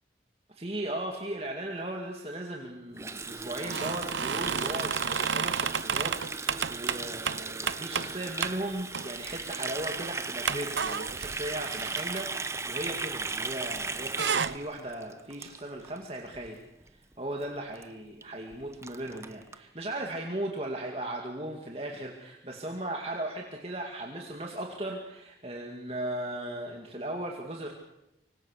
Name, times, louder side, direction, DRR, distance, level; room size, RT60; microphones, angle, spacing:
voice 1, 0.5-16.6 16.9-27.7, right 1 dB, 35° right, 0 dB, 2.4 m, -37 dB
Water tap faucet, 3.0-16.0 16.3-16.5 16.8-17.1 17.4-17.5 17.7-17.8 18.2-18.3 18.5-19.6, right 4 dB, 15° right, 0.9 m, -37 dB
sound 1, 3.6-8.1 8.4-8.6 8.9-9.4 9.8-9.9 10.5-13.5 13.8-14.6, right 6 dB, 90° right, 0.8 m, -32 dB
25.0 x 25.0 x 6.7 m, 0.88 s
head